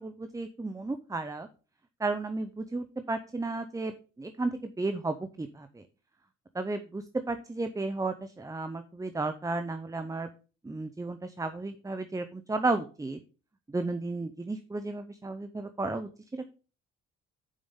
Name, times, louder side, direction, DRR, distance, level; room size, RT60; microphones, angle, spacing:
voice 1, 0.0-1.5 2.0-5.8 6.5-10.3 10.6-13.2 13.7-16.5, right 3 dB, 10° right, 9 dB, 0.6 m, -33 dB
7.3 x 5.1 x 5.4 m, 0.37 s
cardioid pair, 90°, 30 cm